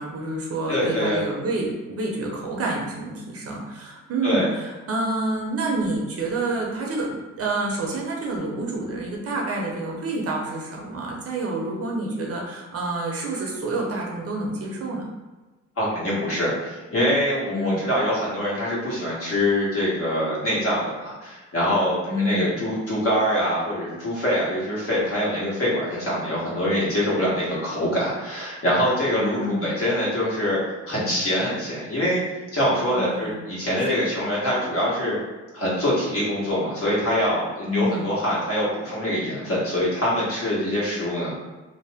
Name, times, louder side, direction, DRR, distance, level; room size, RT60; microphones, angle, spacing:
voice 1, 0.0-15.0 17.5-17.9 22.1-22.5 29.2-29.8 32.9-33.4 37.6-38.1, right 2 dB, 50° right, -1 dB, 0.7 m, -28 dB
voice 2, 0.7-1.2 4.2-4.5 15.8-30.6 30.9-32.2 32.5-35.2 35.5-41.3, equal, 50° left, -7 dB, 1.4 m, -24 dB
2.8 x 2.0 x 3.4 m, 1.2 s
cardioid pair, 90°, 30 cm